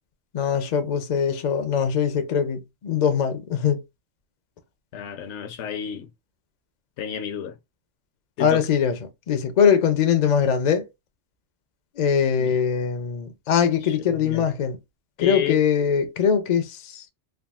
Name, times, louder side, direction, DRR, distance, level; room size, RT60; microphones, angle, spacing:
voice 1, 0.3-3.8 8.4-9.0 9.3-10.9 12.0-14.8 15.2-17.1, left 7 dB, 55° left, 0.4 m, -22 dB
voice 2, 4.9-6.1 7.0-7.6 8.4-8.6 12.4-12.6 13.8-14.5 15.2-15.6, left 8 dB, 80° left, 0.9 m, -31 dB
3.5 x 2.3 x 2.3 m
omnidirectional pair, 1.2 m